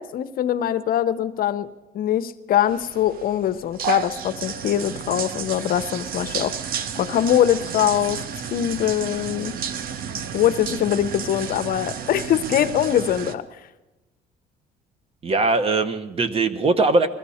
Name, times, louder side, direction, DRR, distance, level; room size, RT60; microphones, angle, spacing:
voice 1, 0.0-1.7 1.9-8.2 8.5-9.5 10.3-13.4, left 11 dB, 60° left, 12 dB, 0.7 m, -22 dB
sound 1, 2.7-13.3, right 8 dB, 60° right, 0.9 m, -32 dB
voice 2, 15.2-17.1, right 3 dB, 35° right, 10 dB, 1.1 m, -20 dB
21.0 x 14.5 x 4.3 m, 1.1 s
cardioid pair, 110°, 17 cm